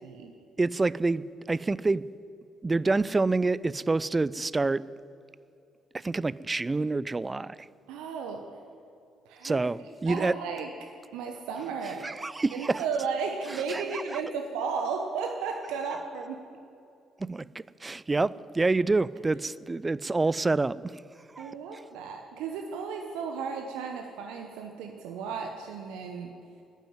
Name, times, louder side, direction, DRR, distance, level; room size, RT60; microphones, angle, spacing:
voice 1, 0.6-2.0 2.6-4.8 5.9-7.7 9.4-10.4 12.0-12.9 13.7-14.2 17.2-20.9 21.4-21.5, right 3 dB, 25° right, 19 dB, 0.4 m, -27 dB
voice 2, 7.9-8.4 9.3-9.6 10.1-10.7 11.1-12.1 12.5-16.4 21.4-26.3, right 5 dB, 70° right, 3 dB, 0.9 m, -34 dB
12.0 x 9.2 x 9.3 m, 2.6 s
hypercardioid pair, 45°, 0 cm